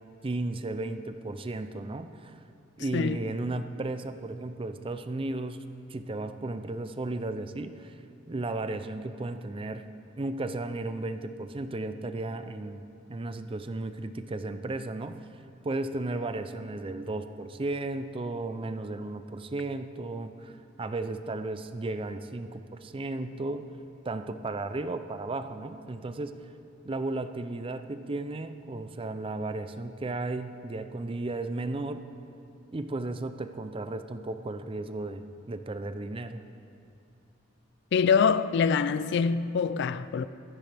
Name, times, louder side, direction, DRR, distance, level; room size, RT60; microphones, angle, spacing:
voice 1, 0.2-2.3 2.8-5.6 5.9-7.9 8.3-9.8 10.2-15.2 15.6-23.7 24.1-26.4 26.8-32.0 32.7-36.4, right 2 dB, 30° right, 0.5 m, -34 dB
voice 2, 37.9-40.3, left 6 dB, 60° left, 0.4 m, -24 dB
15.5 x 14.5 x 3.4 m
head